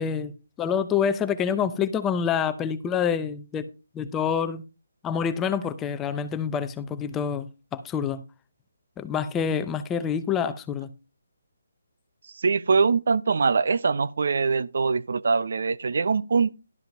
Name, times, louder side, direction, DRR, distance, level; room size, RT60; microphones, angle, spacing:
voice 1, 0.0-3.7 3.9-4.6 5.0-8.2 9.0-10.9, left 7 dB, 10° left, 0.6 m, -27 dB
voice 2, 12.3-16.5, right 5 dB, 60° right, 0.6 m, -23 dB
12.0 x 5.7 x 5.3 m
hypercardioid pair, 165°, 0 cm